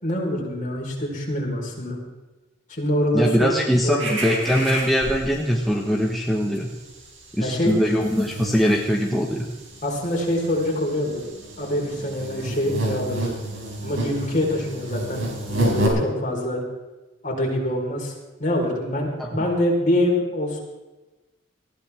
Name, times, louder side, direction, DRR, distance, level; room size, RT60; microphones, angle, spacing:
voice 1, 0.0-2.0 2.7-3.5 3.8-4.2 7.4-7.7 9.8-11.3 11.6-13.3 13.8-16.6 17.2-18.1 18.4-20.6, left 1 dB, 40° left, -2 dB, 4.5 m, -25 dB
voice 2, 3.1-6.7 7.4-9.4 19.2-19.3, equal, ahead, -2 dB, 1.4 m, -22 dB
sound 1, 4.0-5.6 5.9-6.1 6.4-15.9, right 1 dB, 90° right, 4.1 m, -30 dB
19.5 x 14.5 x 3.6 m, 1.1 s
head